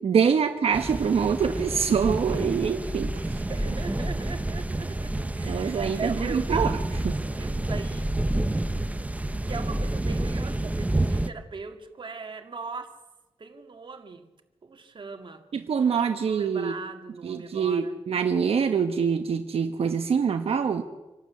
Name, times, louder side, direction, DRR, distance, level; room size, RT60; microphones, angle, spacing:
voice 1, 0.0-3.4 5.4-7.2 15.5-16.7 17.2-20.8, right 6 dB, 85° right, 1.1 m, -25 dB
sound 1, 0.7-11.3, right 1 dB, 15° right, 0.9 m, -29 dB
voice 2, 3.5-7.0 7.3-8.1 9.4-13.0 13.4-14.3 14.6-15.4 16.1-18.0, right 4 dB, 55° right, 2.1 m, -40 dB
26.5 x 12.0 x 8.4 m
wide cardioid pair, 110°, 10 cm